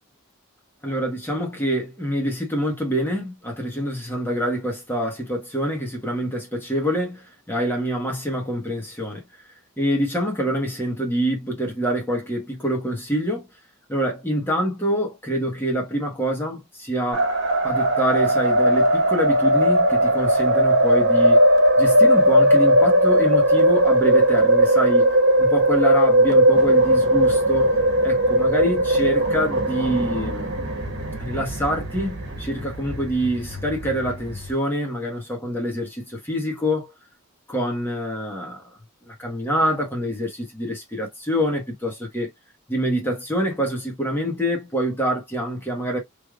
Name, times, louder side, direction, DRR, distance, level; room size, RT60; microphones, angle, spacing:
voice 1, 0.8-9.2 9.8-13.5 13.9-17.3 17.6-21.4 21.8-27.7 28.0-30.5 31.2-36.9 37.5-38.6 39.1-42.3 42.7-46.0, equal, 10° left, 1.4 m, -26 dB
sound 1, 17.1-34.5, right 1 dB, 55° right, 1.3 m, -18 dB
3.3 x 3.3 x 2.3 m
head